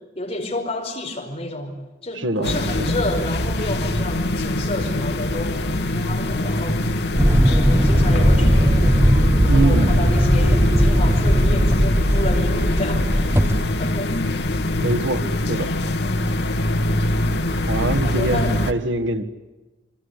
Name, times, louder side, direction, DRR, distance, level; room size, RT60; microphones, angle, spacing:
voice 1, 0.1-6.9 7.5-9.1 9.5-13.3 13.8-14.2 16.0-16.4 18.0-18.6, left 1 dB, 30° left, 1 dB, 5.2 m, -30 dB
voice 2, 2.1-2.9 9.5-9.9 14.7-15.7 17.7-19.2, right 2 dB, 85° right, 8 dB, 1.8 m, -23 dB
sound 1, 2.4-18.7, left 1 dB, 60° left, 1.7 m, -24 dB
sound 2, 7.2-13.6, equal, 15° right, 1.1 m, -17 dB
26.5 x 24.5 x 8.3 m, 1.1 s
head